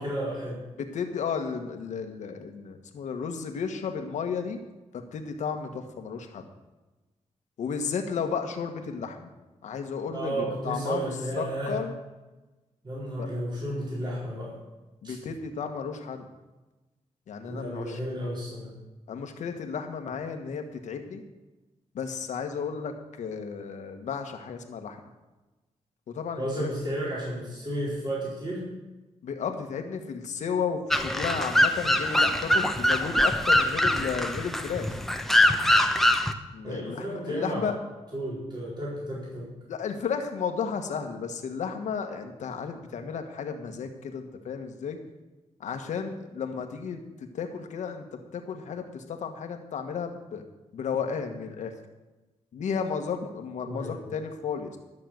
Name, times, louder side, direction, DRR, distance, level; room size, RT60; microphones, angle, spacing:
voice 1, 0.0-0.6 10.1-11.8 12.8-14.6 15.0-15.1 17.5-18.7 26.4-28.7 36.6-37.7 38.1-39.5 53.7-54.1, right 1 dB, 40° right, -7 dB, 4.4 m, -32 dB
voice 2, 0.8-4.6 4.9-6.5 7.6-9.3 9.6-11.1 11.4-11.9 13.2-13.3 15.0-16.3 17.3-18.0 19.1-21.2 21.9-25.0 26.1-26.7 29.2-34.9 36.5-37.8 39.7-45.0 45.6-47.0 47.3-50.5 50.7-51.7 52.5-54.8, left 6 dB, 85° left, 5 dB, 1.4 m, -33 dB
sound 1, 30.9-36.3, left 1 dB, ahead, 0.9 m, -23 dB
13.0 x 6.6 x 7.7 m, 1.1 s
cardioid pair, 85°, 12 cm